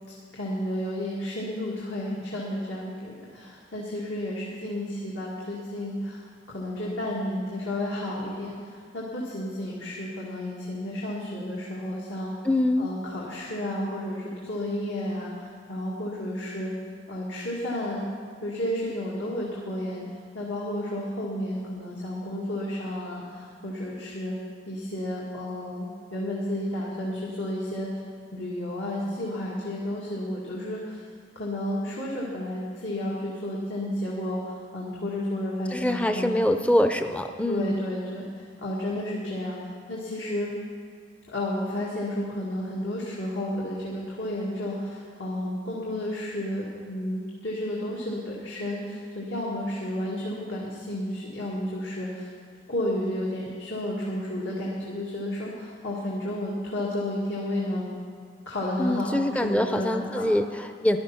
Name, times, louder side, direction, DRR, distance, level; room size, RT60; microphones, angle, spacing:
voice 1, 0.3-12.5 12.8-16.7 17.1-18.0 18.4-24.3 24.7-25.9 26.1-28.0 28.3-31.0 31.4-36.3 37.5-40.5 41.3-52.3 52.7-57.9 58.5-60.3, left 1 dB, 85° left, -5 dB, 2.0 m, -32 dB
voice 2, 12.4-12.9 35.7-37.7 58.8-61.0, left 1 dB, 5° left, 7 dB, 0.4 m, -24 dB
13.5 x 11.5 x 5.7 m, 2.2 s
head